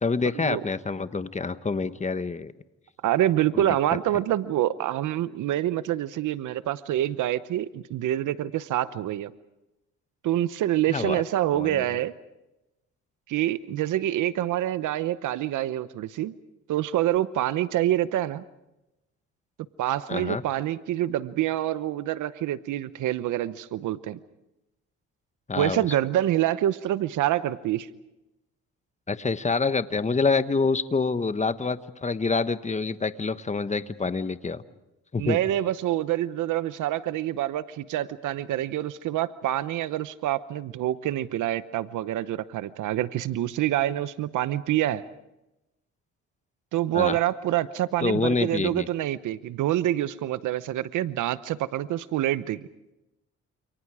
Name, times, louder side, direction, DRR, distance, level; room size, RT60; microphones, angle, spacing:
voice 1, 0.0-2.5 3.5-3.6 10.9-11.2 11.5-11.8 20.1-20.4 25.5-25.8 29.1-34.6 35.1-35.4 46.9-47.2 48.0-48.9, left 4 dB, 25° left, 12 dB, 1.3 m, -26 dB
voice 2, 3.0-9.3 10.2-12.1 13.3-16.3 16.7-18.4 19.8-24.2 25.6-27.9 35.2-45.0 46.7-52.6, right 13 dB, 80° right, 15 dB, 0.9 m, -26 dB
29.5 x 28.5 x 4.9 m, 0.94 s
cardioid pair, 90°, 30 cm